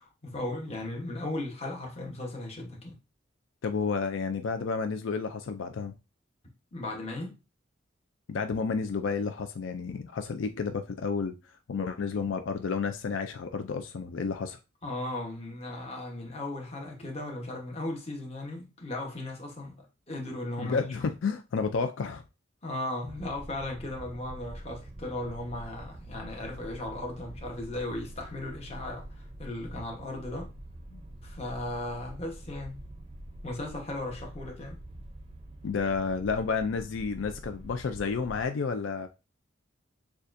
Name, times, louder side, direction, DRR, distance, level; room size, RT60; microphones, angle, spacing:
voice 1, 0.0-3.0 6.7-7.3 14.8-20.8 22.6-30.5 31.2-32.9 33.4-34.8, left 1 dB, 30° left, 1.1 m, -36 dB
voice 2, 3.6-5.9 8.3-11.3 11.7-14.6 20.6-22.2 30.9-31.0 35.6-39.1, left 5 dB, 75° left, 0.4 m, -31 dB
sound 1, 23.0-38.5, right 1 dB, 30° right, 0.5 m, -45 dB
6.7 x 2.3 x 2.6 m
head